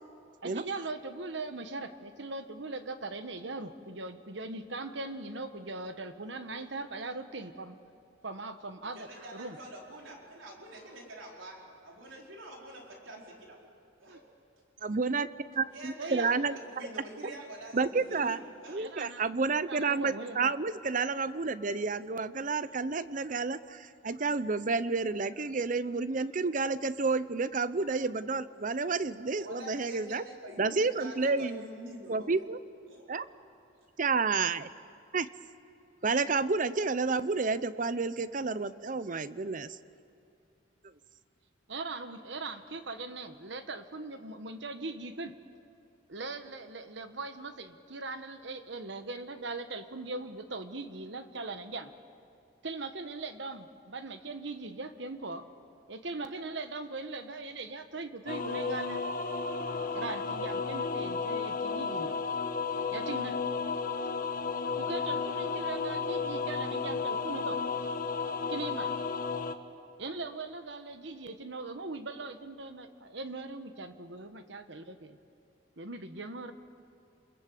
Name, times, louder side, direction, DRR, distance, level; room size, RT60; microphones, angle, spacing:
voice 1, 0.4-7.8 8.2-9.6 14.1-14.2 16.0-16.3 18.8-19.2 19.6-20.5 41.7-45.3 46.1-51.9 52.6-55.5 55.9-59.2 59.9-62.2 62.9-63.4 64.8-67.6 68.5-68.9 70.0-75.2 75.8-76.5, right 3 dB, 65° right, 9 dB, 1.3 m, -40 dB
voice 2, 8.8-13.6 14.0-14.2 15.7-18.8 29.4-32.4 32.9-33.1, right 1 dB, 85° right, -1 dB, 4.8 m, -46 dB
voice 3, 14.8-16.6 17.7-18.4 18.7-30.2 30.6-31.6 32.1-32.6 33.1-33.3 34.0-34.7 35.1-35.3 36.0-39.8, right 4 dB, 40° right, 15 dB, 0.7 m, -30 dB
sound 1, 58.3-69.5, left 5 dB, 45° left, 1.3 m, -33 dB
29.0 x 21.5 x 7.7 m, 2.7 s
head